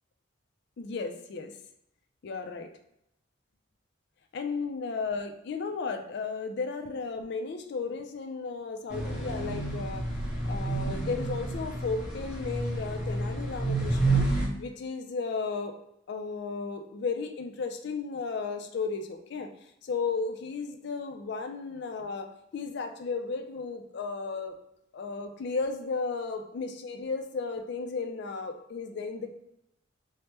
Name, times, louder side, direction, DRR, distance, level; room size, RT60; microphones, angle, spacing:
voice 1, 0.8-1.5 2.2-2.7 4.3-10.1 10.5-14.3 14.6-15.7 16.1-19.5 19.8-24.6 24.9-29.3, left 4 dB, 60° left, 5 dB, 0.4 m, -34 dB
sound 1, 8.9-14.5, right 2 dB, 5° right, 0.8 m, -30 dB
3.2 x 2.1 x 2.9 m, 0.78 s
head